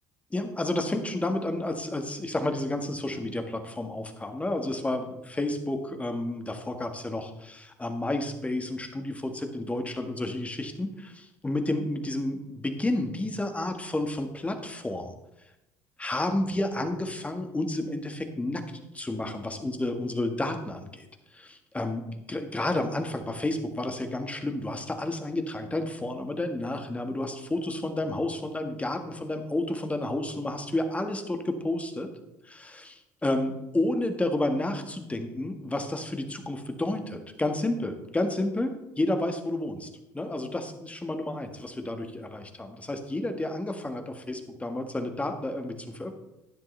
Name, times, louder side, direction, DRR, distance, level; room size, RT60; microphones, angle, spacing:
voice 1, 0.3-15.1 16.0-18.6 18.9-21.0 21.3-32.1 32.4-46.1, left 1 dB, 15° left, 6 dB, 1.6 m, -31 dB
12.0 x 9.8 x 3.3 m, 0.93 s
hypercardioid pair, 70°, 9 cm